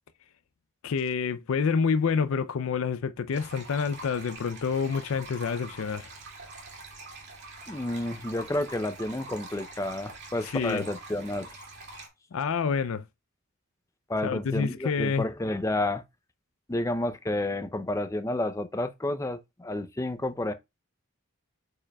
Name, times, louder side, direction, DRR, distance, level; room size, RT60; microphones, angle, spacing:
voice 1, 0.8-6.1 10.4-10.8 12.3-13.0 14.2-15.3, left 5 dB, 70° left, 0.4 m, -28 dB
sound 1, 3.3-12.1, right 2 dB, 50° right, 2.2 m, -45 dB
voice 2, 7.7-11.5 14.1-16.0 16.7-20.5, left 1 dB, 15° left, 0.5 m, -30 dB
8.6 x 4.9 x 2.3 m
head